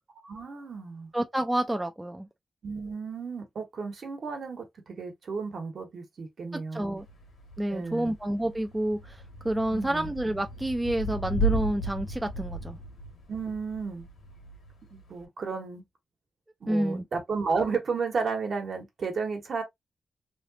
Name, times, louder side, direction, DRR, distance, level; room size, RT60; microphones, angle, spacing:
voice 1, 0.2-1.1 2.6-7.0 7.7-8.1 9.7-10.1 13.3-14.1 14.9-15.8 16.6-19.6, right 4 dB, 55° right, 1.2 m, -33 dB
voice 2, 1.1-2.3 6.5-7.1 7.6-12.8 16.7-17.0, right 1 dB, 10° right, 0.3 m, -29 dB
Thunder / Rain, 7.0-15.2, right 2 dB, 85° left, 1.5 m, -35 dB
3.2 x 2.9 x 2.7 m
wide cardioid pair, 165°, 0 cm